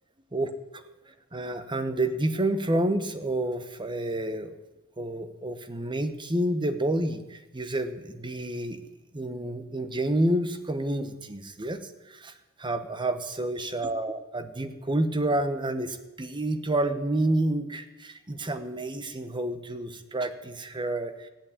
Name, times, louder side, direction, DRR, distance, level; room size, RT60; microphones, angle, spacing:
voice 1, 0.3-4.6 5.0-8.8 9.1-11.8 12.1-12.3 12.6-21.3, right 1 dB, 20° right, 10 dB, 1.0 m, -29 dB
15.0 x 8.7 x 8.6 m, 1.0 s
head